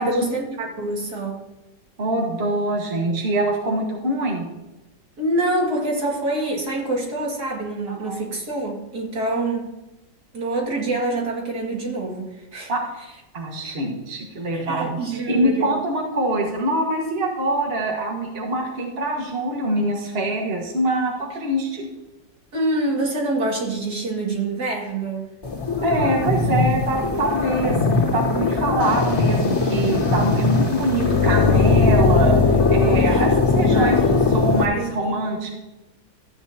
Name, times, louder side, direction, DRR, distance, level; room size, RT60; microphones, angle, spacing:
voice 1, 0.0-1.4 5.2-9.7 10.3-12.7 13.6-13.7 14.5-15.7 22.5-25.3 33.1-33.2 33.7-34.2 34.7-35.5, right 2 dB, 60° right, -2 dB, 2.8 m, -26 dB
voice 2, 2.0-4.5 8.0-8.1 12.7-12.8 13.3-21.9 25.8-35.5, right 1 dB, 35° right, -1 dB, 1.7 m, -24 dB
sound 1, 25.4-34.6, left 4 dB, 15° left, 2.9 m, -19 dB
14.0 x 8.7 x 2.8 m, 1.0 s
omnidirectional pair, 1.9 m